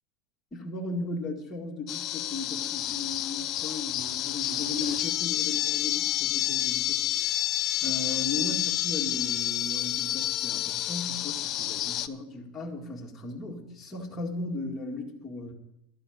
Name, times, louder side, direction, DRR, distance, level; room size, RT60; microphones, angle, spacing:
voice 1, 0.5-7.5 7.8-15.5, left 2 dB, 15° left, -2 dB, 2.1 m, -36 dB
sound 1, 1.9-12.1, left 13 dB, 40° left, 0.7 m, -29 dB
12.0 x 7.7 x 9.2 m, 0.80 s
supercardioid pair, 135°, 0 cm